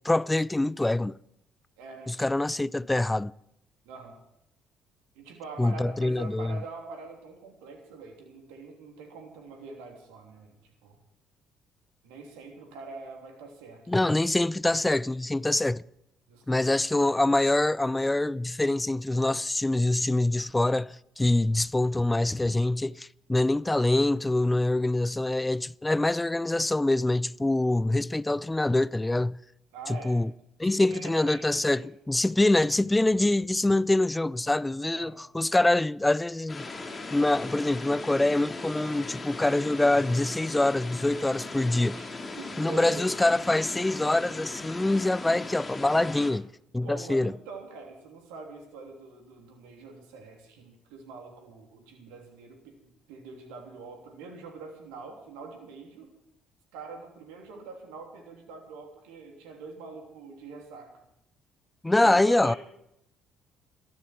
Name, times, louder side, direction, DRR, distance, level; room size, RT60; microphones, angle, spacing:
voice 1, 0.0-1.2 2.1-3.3 5.6-6.6 13.9-15.8 16.5-29.4 29.9-30.3 30.6-36.7 37.1-42.0 42.6-46.5 46.7-47.3 61.8-62.5, left 2 dB, 15° left, 0.5 m, -25 dB
voice 2, 1.8-2.2 3.8-4.2 5.1-11.0 12.0-14.0 16.3-17.1 29.7-30.2 30.6-31.9 34.9-35.2 41.9-43.1 46.8-52.8 53.1-56.1 56.7-60.9 62.0-62.6, right 3 dB, 75° right, 3.1 m, -44 dB
sound 1, 36.5-46.3, left 3 dB, 30° left, 4.2 m, -38 dB
21.5 x 14.0 x 4.6 m
hypercardioid pair, 50°, 0 cm